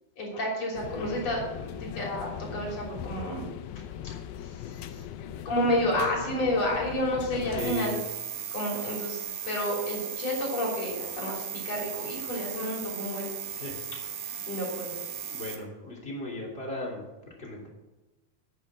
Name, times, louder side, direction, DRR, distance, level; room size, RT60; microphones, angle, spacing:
voice 1, 0.2-3.5 4.4-5.0 5.5-8.0 8.5-13.3 14.5-15.0, left 1 dB, 45° left, -2 dB, 4.0 m, -30 dB
sound 1, 0.8-7.7, left 9 dB, 80° left, 2.5 m, -39 dB
voice 2, 7.5-8.0 13.5-13.8 14.2-14.5 15.3-17.0 17.4-17.7, left 2 dB, 20° left, -2 dB, 2.1 m, -37 dB
sound 2, 7.6-15.6, right 8 dB, 75° right, 3.0 m, -37 dB
9.4 x 7.9 x 7.4 m, 1.1 s
omnidirectional pair, 4.3 m